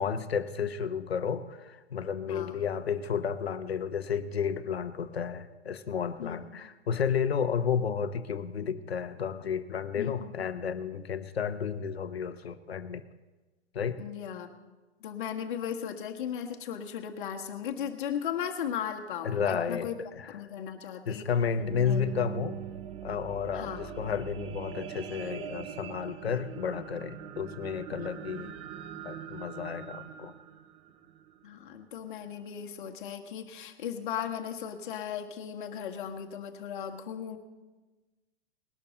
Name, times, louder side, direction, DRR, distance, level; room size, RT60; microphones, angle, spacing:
voice 1, 0.0-13.0 13.7-14.0 19.2-20.3 21.1-22.6 23.0-28.5 29.0-30.3, left 7 dB, 70° left, 12 dB, 1.0 m, -32 dB
voice 2, 2.3-2.6 6.2-6.6 9.9-10.3 14.0-14.5 15.0-20.0 20.3-21.3 21.8-22.2 23.5-23.9 31.4-37.4, left 9 dB, 50° left, 4 dB, 1.6 m, -37 dB
sound 1, 21.2-31.8 32.4-32.5, right 9 dB, 20° right, 0.6 m, -42 dB
19.5 x 12.0 x 4.0 m, 1.2 s
figure-of-eight pair, 110°, 33 cm